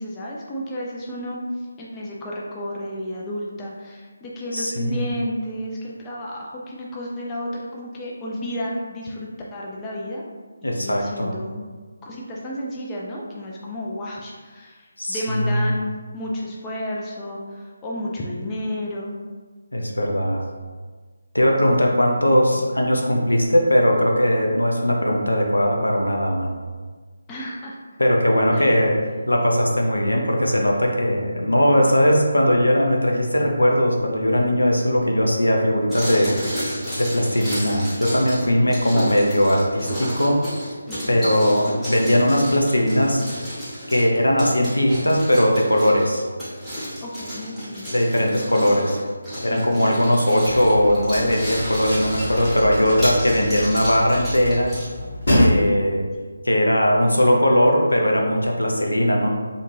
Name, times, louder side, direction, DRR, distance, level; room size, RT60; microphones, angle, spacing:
voice 1, 0.0-10.2 10.6-11.6 12.0-19.2 22.5-22.6 27.3-27.8 28.5-28.9 40.9-41.4 47.0-47.9 48.6-48.8 49.4-50.0 55.3-55.5, left 1 dB, 15° left, -4 dB, 0.3 m, -32 dB
voice 2, 4.5-5.0 10.6-11.3 15.0-15.5 19.7-20.4 21.3-26.5 28.0-29.0 29.3-36.3 37.0-40.4 41.1-43.2 43.9-46.2 47.9-49.0 49.4-54.7 55.3-56.1 56.4-59.3, equal, 80° left, 0 dB, 0.5 m, -19 dB
sound 1, 35.9-54.9, equal, ahead, 0.8 m, -32 dB
sound 2, 50.4-55.5, left 1 dB, 55° left, 0.9 m, -26 dB
2.5 x 2.4 x 3.2 m, 1.5 s
figure-of-eight pair, 155°, 0 cm